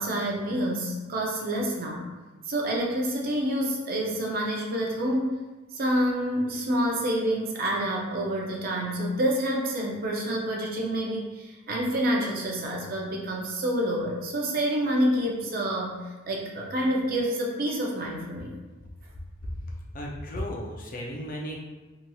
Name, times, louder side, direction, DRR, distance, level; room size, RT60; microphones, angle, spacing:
voice 1, 0.0-2.1 2.5-5.3 5.7-16.0 16.3-18.5, right 1 dB, 45° right, -1 dB, 0.5 m, -28 dB
voice 2, 19.4-21.6, equal, 45° left, -1 dB, 0.4 m, -35 dB
2.8 x 2.7 x 2.3 m, 1.2 s
head